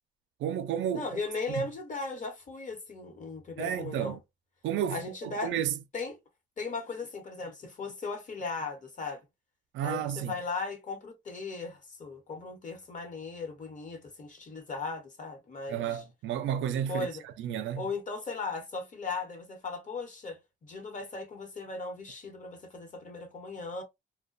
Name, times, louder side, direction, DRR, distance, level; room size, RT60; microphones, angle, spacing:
voice 1, 0.4-1.2 3.6-4.2 4.6-5.7 9.7-10.3 15.7-17.8, right 9 dB, 75° right, 0.4 m, -32 dB
voice 2, 0.9-4.2 4.9-5.5 5.9-6.2 6.6-9.2 9.8-16.0 16.9-17.2 17.8-23.8, left 3 dB, 40° left, 1.0 m, -37 dB
2.3 x 2.1 x 2.5 m
cardioid pair, 90°, 20 cm